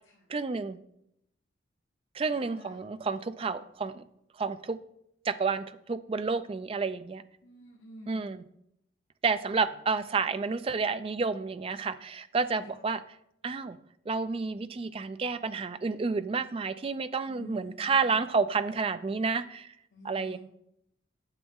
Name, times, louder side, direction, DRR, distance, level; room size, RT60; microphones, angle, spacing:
voice 1, 0.3-0.8 2.1-4.0 4.4-4.8 5.2-7.2 8.1-8.4 9.2-13.0 13.4-13.8 14.1-19.7 20.0-20.4, right 4 dB, 30° right, 12 dB, 0.3 m, -30 dB
voice 2, 2.3-2.8 7.4-8.3 17.3-18.1 19.9-20.4, left 2 dB, 65° left, -2 dB, 1.3 m, -49 dB
9.1 x 7.1 x 3.6 m, 0.77 s
head